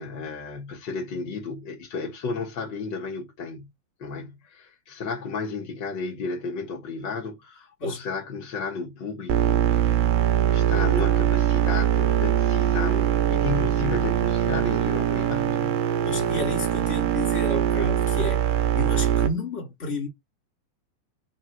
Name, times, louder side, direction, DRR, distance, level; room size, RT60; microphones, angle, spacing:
voice 1, 0.0-3.7 4.0-10.0 10.5-15.8, left 4 dB, 85° left, 0.9 m, -33 dB
sound 1, 9.3-19.3, right 10 dB, 80° right, 2.4 m, -22 dB
voice 2, 16.0-18.4 18.7-20.1, left 1 dB, 20° left, 2.5 m, -30 dB
4.8 x 4.6 x 4.4 m
omnidirectional pair, 4.2 m